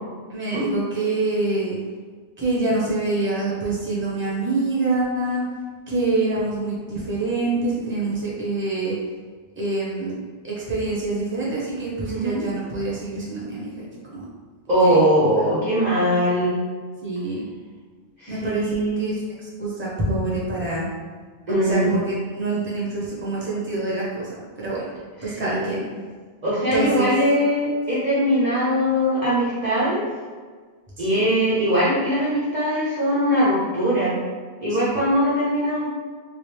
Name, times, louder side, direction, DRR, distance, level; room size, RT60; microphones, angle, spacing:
voice 1, 0.3-1.8 2.4-5.4 5.9-9.0 9.6-10.1 10.4-14.2 14.8-15.1 17.0-17.4 18.3-19.3 19.6-20.9 21.5-24.8 25.2-25.8 26.7-27.1 31.0-31.2 34.7-34.8, right 2 dB, 10° right, -7 dB, 0.8 m, -26 dB
voice 2, 12.1-12.4 14.7-16.6 18.2-19.1 19.3-19.5 21.5-21.9 25.2-25.8 26.4-30.0 31.0-34.2 34.6-35.9, equal, 45° right, -9 dB, 0.7 m, -21 dB
3.1 x 2.5 x 3.2 m, 1.5 s
omnidirectional pair, 1.2 m